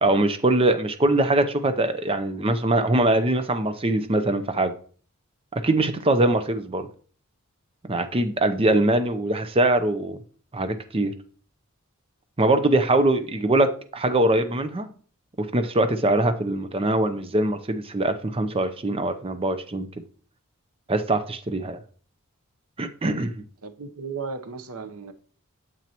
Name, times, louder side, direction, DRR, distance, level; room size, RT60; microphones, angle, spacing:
voice 1, 0.0-4.7 5.5-6.9 7.9-10.2 10.5-11.1 12.4-14.9 15.4-19.9 20.9-21.8 22.8-23.4, right 2 dB, 25° right, 8 dB, 0.6 m, -22 dB
voice 2, 23.6-25.1, right 4 dB, 90° right, 9 dB, 0.9 m, -35 dB
9.1 x 8.2 x 2.9 m, 0.43 s
head